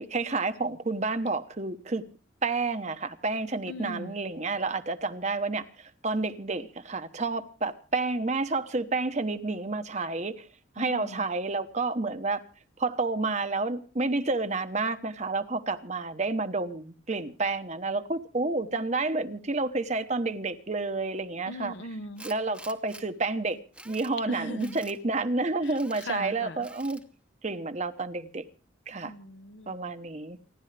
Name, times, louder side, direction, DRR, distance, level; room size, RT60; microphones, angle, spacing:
voice 1, 0.0-2.0 2.4-10.5 10.8-12.4 12.8-21.7 22.2-23.6 23.8-27.0 27.4-28.4 28.9-29.1 29.7-30.4, right 3 dB, 35° right, 1.0 m, -30 dB
voice 2, 3.7-4.1 10.8-11.2 21.5-22.3 24.3-24.8 25.6-26.7 29.0-29.8, left 1 dB, 65° left, 1.0 m, -40 dB
Tools, 22.2-23.0 23.5-24.1 24.6-25.0 25.6-26.1 26.6-27.0, right 2 dB, 5° right, 0.9 m, -48 dB
29.0 x 11.5 x 3.3 m
head